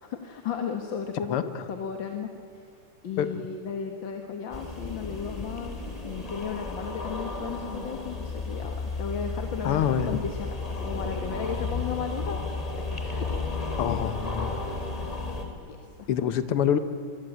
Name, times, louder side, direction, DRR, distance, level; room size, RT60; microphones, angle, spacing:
voice 1, 0.0-1.4 1.7-2.7 3.0-12.4 12.7-13.3 15.7-16.4, left 6 dB, 60° left, 4 dB, 2.2 m, -35 dB
sound 1, 4.5-15.5, left 3 dB, 15° left, 3.0 m, -33 dB
voice 2, 9.6-10.2 13.8-14.6 16.1-16.8, left 9 dB, 90° left, 11 dB, 2.0 m, -26 dB
25.5 x 23.0 x 9.3 m, 2.5 s
omnidirectional pair, 2.4 m